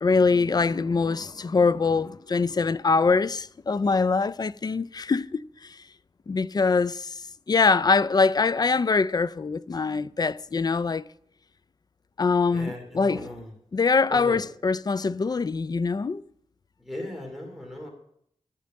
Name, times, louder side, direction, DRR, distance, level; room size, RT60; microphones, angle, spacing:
voice 1, 0.0-5.8 6.3-11.0 12.2-13.3 13.7-16.2, left 4 dB, 35° left, 0.4 m, -23 dB
voice 2, 12.5-13.5 14.1-14.4 16.8-17.9, left 1 dB, ahead, 2.6 m, -36 dB
13.0 x 5.2 x 7.5 m
wide cardioid pair, 100°, 11 cm